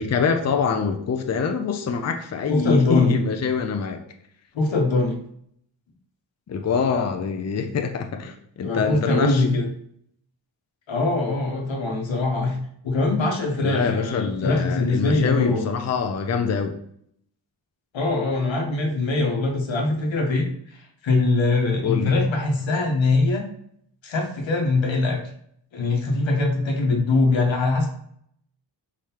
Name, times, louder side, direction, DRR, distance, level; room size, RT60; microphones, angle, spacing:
voice 1, 0.0-4.0 6.5-9.4 13.6-16.8 21.8-22.1, left 5 dB, 35° left, 5 dB, 0.5 m, -25 dB
voice 2, 2.5-3.2 4.5-5.2 8.6-9.7 10.9-12.6 12.8-15.7 17.9-23.4 24.0-25.2 25.7-27.9, left 3 dB, 90° left, 2 dB, 1.1 m, -22 dB
4.8 x 3.7 x 2.9 m, 0.67 s
wide cardioid pair, 105°, 44 cm